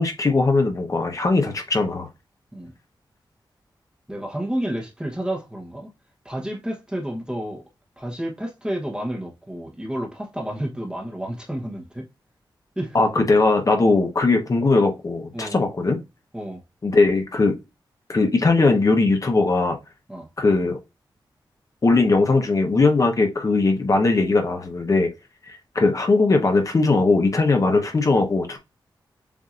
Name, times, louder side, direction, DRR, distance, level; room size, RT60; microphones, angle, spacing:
voice 1, 0.0-2.1 12.9-16.0 16.8-17.5 18.1-19.8 20.4-20.8 21.8-25.1 25.5-28.6, left 3 dB, 40° left, 1.0 m, -19 dB
voice 2, 4.1-5.9 6.2-7.6 8.0-12.1 12.8-13.2 15.3-15.6 16.3-16.6 20.1-20.3, right 1 dB, 10° right, 1.0 m, -30 dB
7.1 x 2.7 x 2.5 m
wide cardioid pair, 105°, 8 cm